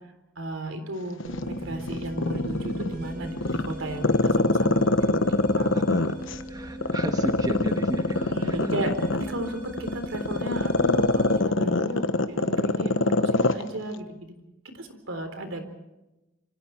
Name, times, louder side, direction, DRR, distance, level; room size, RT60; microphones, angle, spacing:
voice 1, 0.4-1.2 1.6-5.3 5.5-5.7 8.1-14.3 14.7-15.6, right 1 dB, 70° right, 7 dB, 3.7 m, -34 dB
Growling, 1.2-2.9 3.4-6.4 6.8-13.6 13.9-14.0, left 2 dB, 65° left, 1.2 m, -23 dB
sound 1, 1.2-11.4, equal, 45° right, 4.6 m, -38 dB
voice 2, 5.7-6.2 6.5-8.7, right 1 dB, 20° right, 5 dB, 1.5 m, -34 dB
27.0 x 25.0 x 4.6 m, 0.99 s
head